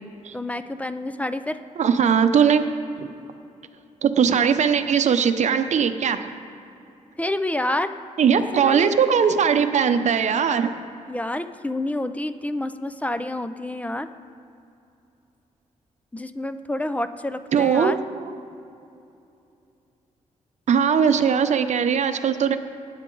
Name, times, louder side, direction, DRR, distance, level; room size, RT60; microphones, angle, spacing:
voice 1, 0.3-1.6 7.2-7.9 8.4-8.9 11.1-14.1 16.1-18.0, left 1 dB, 10° left, 11 dB, 0.5 m, -28 dB
voice 2, 1.8-2.7 3.0-3.1 4.0-6.2 8.2-10.7 17.5-18.3 20.7-22.6, right 7 dB, 60° right, 9 dB, 0.8 m, -20 dB
18.0 x 9.2 x 3.9 m, 2.7 s
cardioid pair, 100°, 13 cm